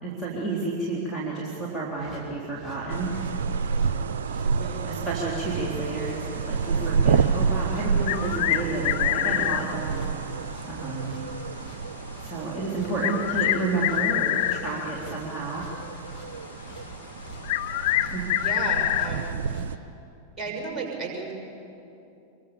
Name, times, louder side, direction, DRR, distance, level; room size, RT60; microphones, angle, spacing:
voice 1, 0.0-3.1 4.9-10.1 10.6-11.2 12.2-15.6 18.1-18.2, right 3 dB, 5° right, -8 dB, 3.8 m, -31 dB
sound 1, 1.9-19.7, left 2 dB, 20° left, 6.6 m, -48 dB
sound 2, 2.9-19.8, right 5 dB, 60° right, 0.7 m, -30 dB
voice 2, 4.4-4.9 18.0-19.3 20.4-21.3, right 4 dB, 25° right, 1 dB, 6.0 m, -34 dB
sound 3, 8.1-9.7 11.5-11.6 13.0-15.0 17.4-19.2, left 14 dB, 50° left, 1.0 m, -25 dB
26.0 x 23.0 x 7.1 m, 2.8 s
figure-of-eight pair, 90°, 0 cm